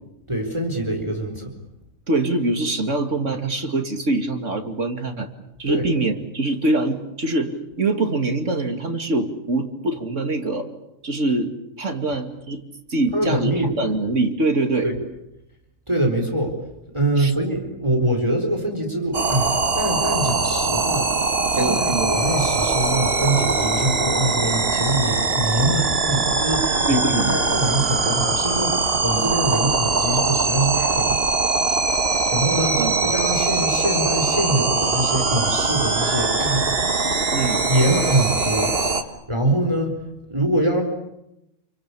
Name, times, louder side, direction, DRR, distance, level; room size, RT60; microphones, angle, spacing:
voice 1, 0.3-1.5 5.7-5.9 13.1-13.7 14.8-15.0 15.9-16.5 16.9-19.5 19.7-31.3 32.1-36.8 37.7-38.8 39.3-40.0 40.3-40.8, right 1 dB, 20° right, 3 dB, 4.5 m, -24 dB
voice 2, 2.1-5.3 5.6-10.7 11.0-12.6 12.9-14.9 17.2-17.3 21.6-22.1 26.9-27.4 31.6-31.8 32.8-32.9 37.3-37.6, right 2 dB, 65° right, 6 dB, 2.9 m, -24 dB
sound 1, 19.1-39.0, right 3 dB, 45° right, 2.1 m, -22 dB
29.5 x 24.0 x 8.5 m, 0.86 s
omnidirectional pair, 1.4 m